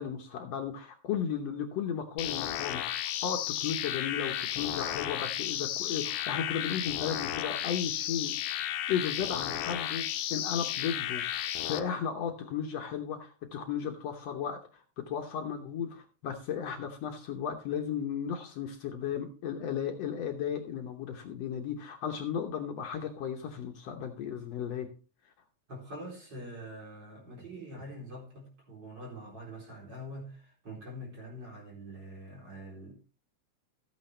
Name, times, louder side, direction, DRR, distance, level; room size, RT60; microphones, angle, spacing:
voice 1, 0.0-8.4 8.9-24.9, left 8 dB, 65° left, 2.0 m, -35 dB
sound 1, 2.2-11.8, left 12 dB, 85° left, 2.2 m, -33 dB
voice 2, 25.7-32.9, equal, 35° right, 4.4 m, -44 dB
14.0 x 8.8 x 3.3 m
omnidirectional pair, 3.4 m